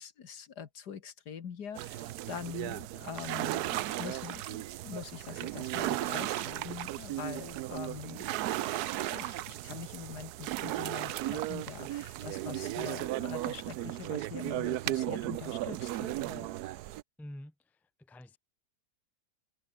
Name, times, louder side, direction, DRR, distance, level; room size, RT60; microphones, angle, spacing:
voice 1, 0.0-8.5 9.1-16.5, left 7 dB, 75° left, 2.1 m, -44 dB
sound 1, 1.7-17.0, right 14 dB, 75° right, 1.1 m, -35 dB
voice 2, 17.2-18.4, left 1 dB, ahead, 0.8 m, -48 dB
omnidirectional pair, 1.8 m